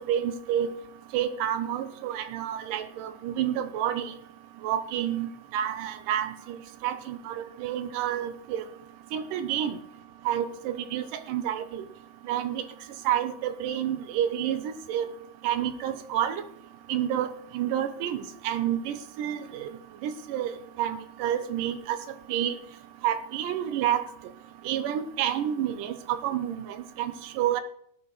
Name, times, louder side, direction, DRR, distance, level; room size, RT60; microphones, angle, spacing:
voice 1, 0.1-0.7 1.1-4.1 4.6-6.3 6.8-8.6 9.1-9.7 10.3-11.8 12.3-12.6 13.1-15.1 15.4-16.4 16.9-19.7 20.0-20.5 20.8-22.0 22.3-22.5 23.0-24.0 24.7-27.6, right 10 dB, 85° right, 11 dB, 2.4 m, -29 dB
18.0 x 11.0 x 3.1 m, 0.69 s
omnidirectional pair, 3.7 m